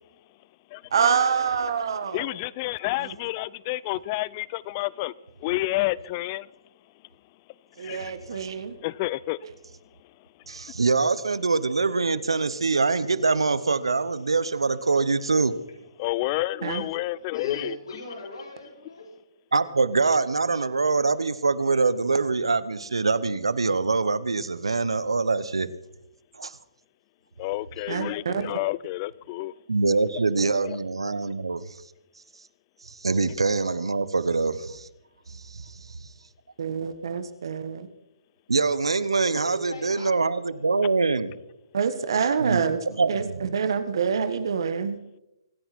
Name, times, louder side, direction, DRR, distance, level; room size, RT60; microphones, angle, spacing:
voice 1, 0.9-2.2 3.0-3.1 7.8-8.7 16.6-16.8 27.9-28.6 36.6-37.9 41.7-42.8 43.1-45.0, right 6 dB, 65° right, 1.4 m, -26 dB
voice 2, 2.1-5.1 5.4-6.5 7.8-8.4 8.8-9.4 16.0-17.8 27.4-29.5 30.6-30.8 40.8-40.9, left 18 dB, 30° left, 0.5 m, -29 dB
voice 3, 10.5-15.5 19.5-25.7 26.4-26.5 29.7-31.7 32.9-34.9 35.5-35.7 38.5-41.3 42.4-43.5, right 4 dB, 85° right, 1.0 m, -24 dB
voice 4, 17.3-19.1 27.7-28.1 39.3-40.6, left 1 dB, 75° left, 5.9 m, -40 dB
25.0 x 10.0 x 4.3 m
hypercardioid pair, 140°, 3 cm